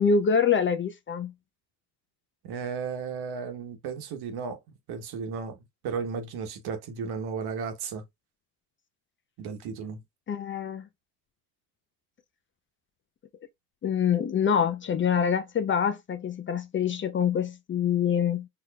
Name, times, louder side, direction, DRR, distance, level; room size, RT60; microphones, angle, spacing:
voice 1, 0.0-1.3 10.3-10.9 13.8-18.5, left 7 dB, 30° left, 0.5 m, -25 dB
voice 2, 2.4-4.6 4.9-5.6 5.8-8.0 9.4-10.0, right 5 dB, 65° right, 1.2 m, -34 dB
4.7 x 2.9 x 2.2 m
supercardioid pair, 100°, 41 cm